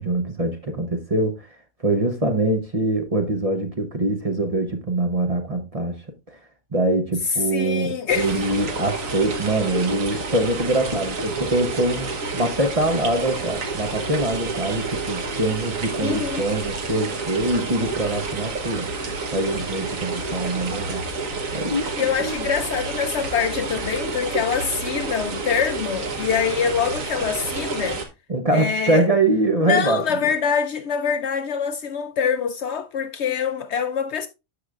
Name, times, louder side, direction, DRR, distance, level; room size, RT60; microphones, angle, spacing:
voice 1, 0.0-6.4 6.7-18.9 19.3-21.0 21.5-22.5 28.3-30.0, right 2 dB, 30° right, 0.9 m, -24 dB
voice 2, 7.5-8.4 16.0-16.5 22.0-28.0 28.5-29.1 29.6-34.3, left 7 dB, 65° left, 0.8 m, -24 dB
sound 1, 8.1-28.0, right 3 dB, 75° right, 1.6 m, -29 dB
13.0 x 4.9 x 2.4 m
omnidirectional pair, 1.4 m